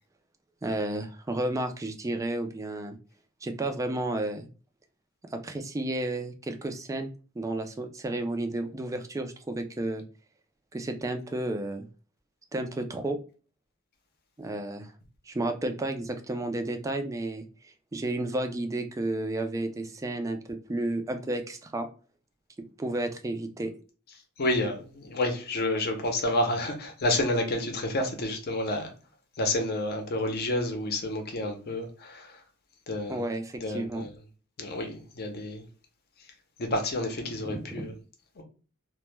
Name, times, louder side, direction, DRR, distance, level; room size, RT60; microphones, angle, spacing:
voice 1, 0.6-3.0 3.4-4.5 5.3-7.1 7.4-10.0 10.7-11.9 12.5-13.2 14.4-14.9 15.3-21.9 22.8-23.7 33.1-34.1 37.4-37.9, right 2 dB, 15° right, 0.3 m, -32 dB
voice 2, 24.4-28.9 29.4-32.3 32.9-33.2 33.6-34.1 34.6-35.6 36.6-37.9 38.4-38.5, left 1 dB, 50° left, 0.6 m, -29 dB
2.1 x 2.1 x 3.0 m
head